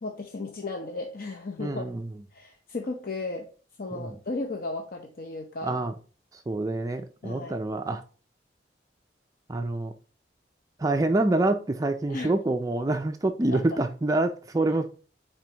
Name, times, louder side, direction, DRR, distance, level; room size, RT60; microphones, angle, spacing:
voice 1, 0.0-1.8 2.3-3.5 3.8-5.8 7.2-7.6 12.1-12.4 13.5-13.6, left 3 dB, 50° left, 0.7 m, -35 dB
voice 2, 1.6-2.1 3.9-4.1 5.6-5.9 6.3-8.0 9.5-9.9 10.8-14.9, right 2 dB, 20° right, 0.3 m, -26 dB
9.3 x 4.4 x 2.9 m
head